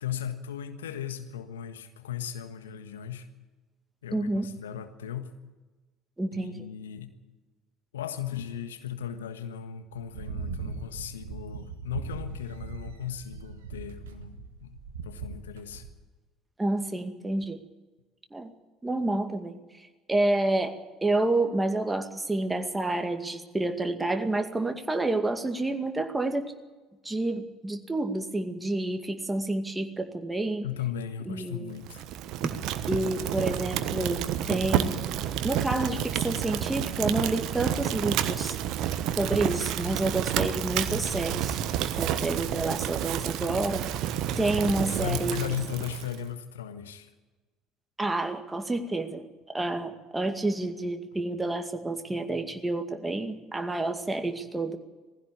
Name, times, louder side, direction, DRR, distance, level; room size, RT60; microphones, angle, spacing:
voice 1, 0.0-3.3 4.0-5.3 6.3-7.1 7.9-14.8 15.0-15.9 30.6-32.1 45.0-47.1, left 9 dB, 80° left, 8 dB, 1.5 m, -36 dB
voice 2, 4.1-4.5 6.2-6.6 16.6-17.6 18.3-18.5 18.8-20.7 21.0-26.5 27.0-30.6 31.3-31.7 32.9-35.0 35.4-38.6 39.1-41.6 42.0-43.9 44.4-45.4 48.0-54.8, right 2 dB, 10° right, 5 dB, 2.2 m, -29 dB
sound 1, 9.9-15.9, right 5 dB, 80° right, 1.5 m, -39 dB
Fire, 31.8-46.2, right 11 dB, 60° right, 1.3 m, -30 dB
19.0 x 15.5 x 8.6 m, 1.2 s
hypercardioid pair, 65°, 0 cm